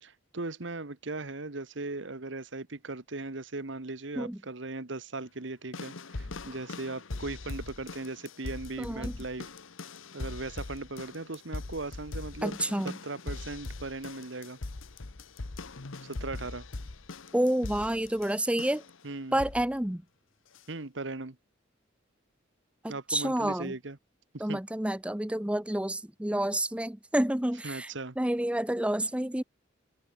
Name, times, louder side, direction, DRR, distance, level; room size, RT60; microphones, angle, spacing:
voice 1, 0.0-9.5 10.1-12.6 12.8-14.6 16.0-16.6 19.0-19.4 20.7-21.4 22.9-24.0 24.5-24.6 27.6-28.2, right 2 dB, 65° right, 1.4 m, -38 dB
sound 1, 5.7-19.0 19.4-19.8 20.5-20.6, left 2 dB, 85° left, 1.2 m, -41 dB
voice 2, 8.8-9.1 12.4-13.0 17.3-18.8 19.3-20.0 22.8-23.7 24.4-27.9 28.2-29.4, right 1 dB, 5° right, 0.6 m, -29 dB
head